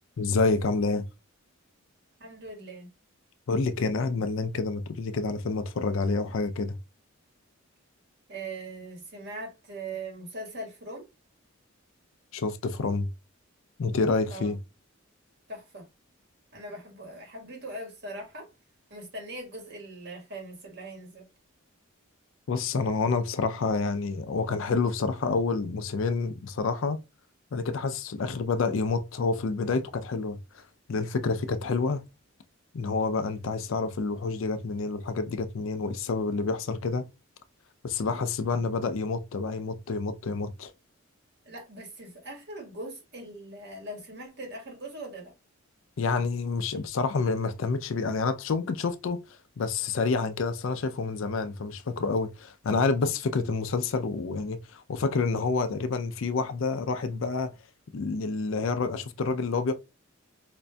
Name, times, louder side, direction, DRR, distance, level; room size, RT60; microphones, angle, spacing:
voice 1, 0.2-1.0 3.5-6.8 12.3-13.1 13.8-14.6 22.5-27.0 27.5-30.6 30.9-32.0 32.7-37.1 37.8-40.7 46.0-49.2 49.6-57.5 57.9-59.7, left 4 dB, 60° left, 0.4 m, -28 dB
voice 2, 2.2-2.9 8.3-11.0 14.3-14.5 15.5-15.9 16.5-18.5 18.9-21.2 41.4-45.3, right 1 dB, 50° right, 1.4 m, -40 dB
5.1 x 2.5 x 2.2 m
head